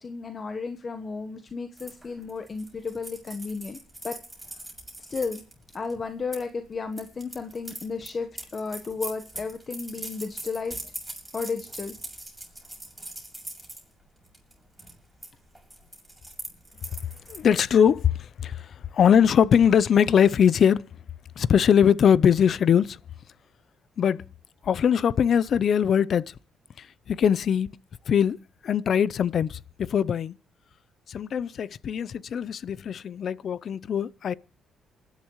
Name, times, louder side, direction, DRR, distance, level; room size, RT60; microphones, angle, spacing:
voice 1, 0.0-3.8 4.0-4.2 5.1-5.4 5.7-10.8 11.3-11.9, left 4 dB, 40° left, 1.2 m, -33 dB
sound 1, 1.8-6.4 6.9-13.8 14.3-14.5 14.8-15.3 15.6-17.7, right 1 dB, 5° right, 6.7 m, -41 dB
voice 2, 17.3-20.8 21.4-23.0 24.0-24.2 24.6-26.2 26.8-27.7 28.1-28.4 28.6-30.4 31.1-34.3, left 8 dB, 60° left, 0.6 m, -21 dB
27.5 x 11.0 x 3.1 m
cardioid pair, 90°, 0 cm